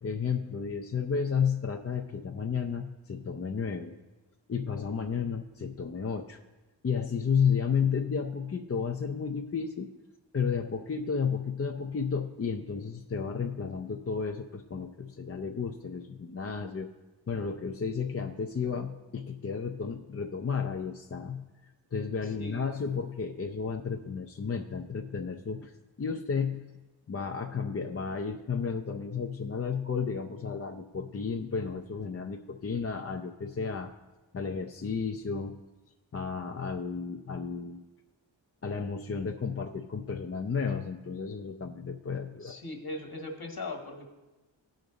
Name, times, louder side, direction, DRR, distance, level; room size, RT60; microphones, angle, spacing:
voice 1, 0.0-3.9 4.5-6.4 6.8-9.9 10.3-16.9 17.3-21.4 21.9-26.6 27.1-33.9 34.3-35.6 36.1-37.8 38.6-42.6, left 6 dB, 30° left, 4 dB, 0.5 m, -32 dB
voice 2, 22.4-22.7 42.4-44.1, left 2 dB, 50° left, 3 dB, 1.6 m, -39 dB
14.5 x 5.2 x 3.9 m, 1.1 s
cardioid pair, 45°, 46 cm